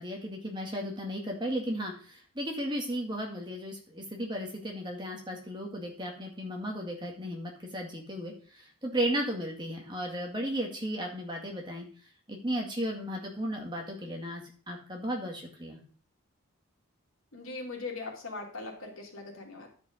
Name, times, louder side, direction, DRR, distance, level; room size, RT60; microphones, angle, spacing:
voice 1, 0.0-11.9 12.3-15.8, equal, 20° right, 0 dB, 1.9 m, -35 dB
voice 2, 17.3-19.7, left 3 dB, 70° left, 0 dB, 2.6 m, -40 dB
10.5 x 5.2 x 5.1 m, 0.42 s
head